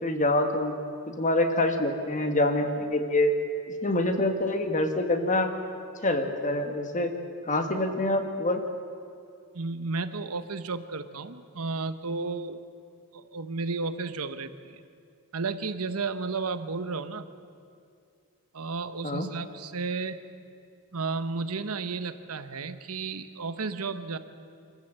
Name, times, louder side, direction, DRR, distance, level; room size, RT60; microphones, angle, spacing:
voice 1, 0.0-0.7 1.1-3.3 3.8-5.5 6.0-7.1 7.5-8.6 19.0-19.3, left 1 dB, 35° left, 6 dB, 1.6 m, -26 dB
voice 2, 9.5-12.6 13.1-14.8 15.3-17.3 18.5-20.2 20.9-24.2, right 4 dB, 75° right, 11 dB, 1.0 m, -33 dB
25.5 x 14.5 x 8.1 m, 2.4 s
head